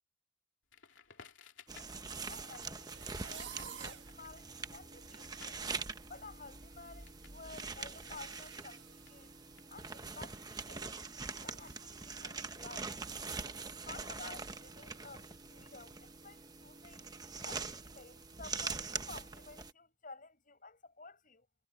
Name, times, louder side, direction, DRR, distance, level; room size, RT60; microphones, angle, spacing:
Crackle, 0.7-7.4 7.7-10.1, left 6 dB, 90° left, 2.9 m, -60 dB
sound 1, 1.7-19.7, right 4 dB, 20° right, 1.0 m, -44 dB
voice 1, 2.2-5.6 6.1-9.3 9.7-11.0 11.4-13.0 13.4-17.1 17.4-21.5, left 3 dB, 45° left, 7.6 m, -53 dB
sound 2, 2.8-4.1 4.7-4.8 5.2-5.5 5.7-9.4 9.7-9.9 10.3-10.4 11.3-11.8, right 10 dB, 70° right, 1.5 m, -53 dB
head